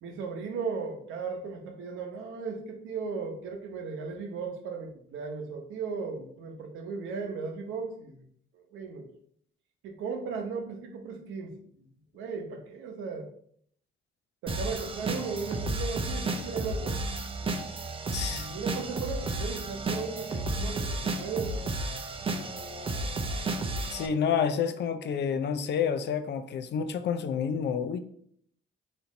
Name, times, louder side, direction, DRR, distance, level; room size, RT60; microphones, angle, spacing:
voice 1, 0.0-8.2 8.5-9.1 9.8-11.8 12.1-13.3 14.4-17.0 18.2-21.7, right 5 dB, 90° right, 3 dB, 0.9 m, -36 dB
sound 1, 14.5-24.1, right 2 dB, 25° right, 0.5 m, -32 dB
voice 2, 18.1-18.5 22.3-23.1 23.8-28.0, left 7 dB, 60° left, 10 dB, 0.5 m, -30 dB
4.3 x 2.7 x 4.0 m, 0.64 s
cardioid pair, 90°, 20 cm